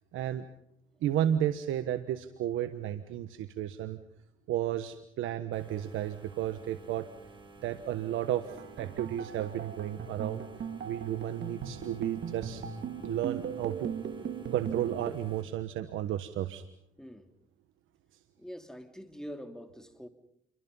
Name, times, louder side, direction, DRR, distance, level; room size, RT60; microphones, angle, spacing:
voice 1, 0.1-0.4 1.0-4.0 4.5-7.1 7.6-10.4 10.8-12.6 13.0-13.9 14.5-16.6, right 11 dB, 85° right, 10 dB, 1.3 m, -33 dB
sound 1, 5.5-15.4, right 3 dB, 25° right, 5.9 m, -53 dB
sound 2, 8.5-15.1, right 7 dB, 60° right, 2.8 m, -38 dB
voice 2, 17.0-17.3 18.4-20.1, equal, 5° left, 5 dB, 3.4 m, -44 dB
29.5 x 24.0 x 5.6 m, 0.75 s
cardioid pair, 90°, 20 cm